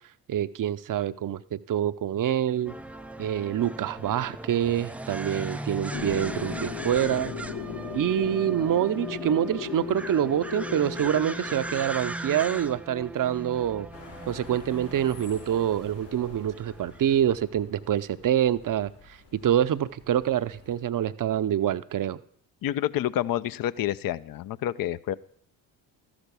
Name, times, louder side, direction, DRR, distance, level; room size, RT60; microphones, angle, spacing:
voice 1, 0.3-2.7 3.2-7.3 7.9-13.9 14.3-18.9 19.4-22.2, right 10 dB, 40° right, 0.7 m, -26 dB
sound 1, 2.7-17.2, right 1 dB, 5° right, 0.3 m, -38 dB
sound 2, 5.9-11.8, left 7 dB, 65° left, 2.0 m, -37 dB
sound 3, 13.9-20.8, left 4 dB, 85° left, 3.5 m, -50 dB
voice 2, 22.6-25.1, left 12 dB, 45° left, 0.6 m, -28 dB
13.0 x 6.1 x 6.8 m
hypercardioid pair, 50°, 50 cm